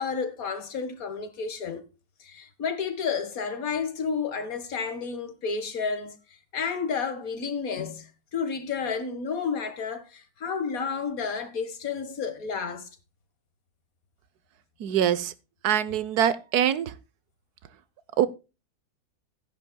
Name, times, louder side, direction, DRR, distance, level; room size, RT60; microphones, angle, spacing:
voice 1, 0.0-1.8 2.2-6.2 6.5-12.9, left 5 dB, 65° left, 1.9 m, -31 dB
voice 2, 14.8-15.3 15.6-16.9 18.2-18.3, right 10 dB, 90° right, 1.4 m, -23 dB
16.0 x 10.5 x 2.2 m
omnidirectional pair, 1.6 m